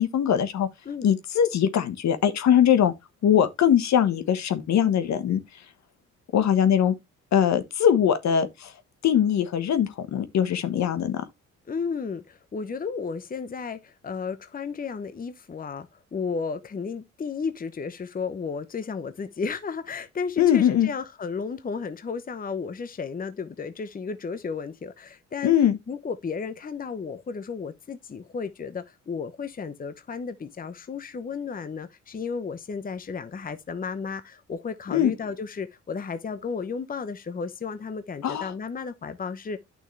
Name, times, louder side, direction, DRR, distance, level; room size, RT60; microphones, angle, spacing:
voice 1, 0.0-0.7 1.0-2.9 3.2-5.4 6.3-6.9 7.3-8.7 9.0-11.2 20.4-20.9 25.4-25.8 34.9-35.1 38.2-38.5, left 9 dB, 65° left, 1.3 m, -21 dB
voice 2, 11.7-25.5 25.9-39.6, left 5 dB, 30° left, 0.9 m, -33 dB
9.2 x 6.2 x 3.2 m
cardioid pair, 90°, 30 cm